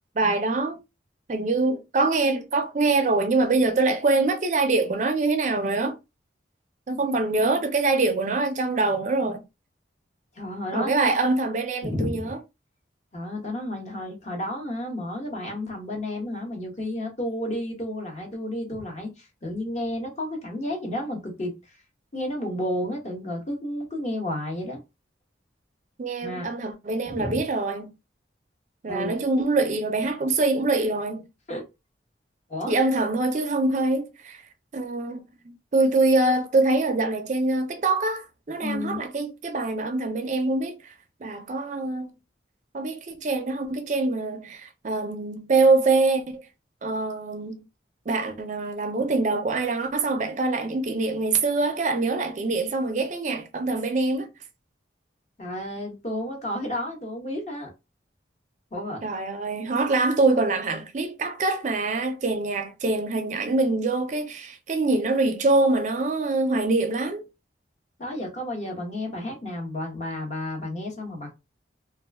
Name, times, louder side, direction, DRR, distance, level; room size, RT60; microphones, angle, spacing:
voice 1, 0.2-0.8 1.3-6.0 6.9-9.4 10.7-12.4 26.0-27.9 28.8-31.2 32.7-34.4 34.7-40.9 41.2-42.1 42.7-46.5 46.8-47.6 48.1-54.3 59.0-67.2, right 3 dB, 40° right, 0.4 m, -24 dB
voice 2, 10.3-11.1 11.8-12.3 13.1-21.8 22.1-24.8 26.2-26.5 27.0-27.4 28.9-29.1 31.5-31.6 32.5-32.7 38.6-39.0 55.4-57.7 58.7-59.0 68.0-71.3, left 1 dB, 35° left, 1.0 m, -31 dB
2.3 x 2.2 x 3.3 m
head